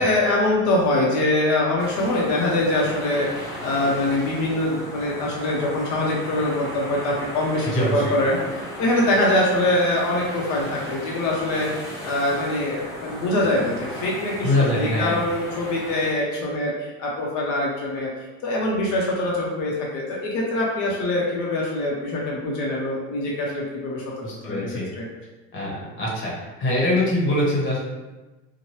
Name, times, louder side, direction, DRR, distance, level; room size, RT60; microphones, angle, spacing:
voice 1, 0.0-8.4 8.8-14.5 14.8-18.1 18.4-24.0 24.4-24.7 25.0-25.1, left 1 dB, 55° left, -3 dB, 0.7 m, -23 dB
sound 1, 1.8-16.1, equal, 10° left, 0.8 m, -36 dB
voice 2, 7.6-8.1 14.4-15.2 24.2-24.8 25.5-26.3 26.6-27.8, left 1 dB, 35° left, -4 dB, 1.0 m, -23 dB
2.8 x 2.2 x 3.0 m, 1.2 s
supercardioid pair, 125°, 35 cm